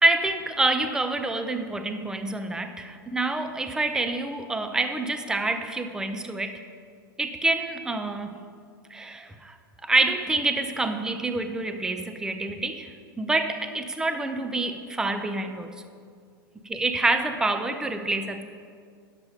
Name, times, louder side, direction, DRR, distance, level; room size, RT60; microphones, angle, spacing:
voice 1, 0.0-6.6 7.2-8.4 8.9-9.6 9.8-15.7 16.6-18.4, right 2 dB, 5° right, 7 dB, 0.6 m, -27 dB
11.0 x 7.4 x 5.1 m, 2.1 s
figure-of-eight pair, 95°, 12 cm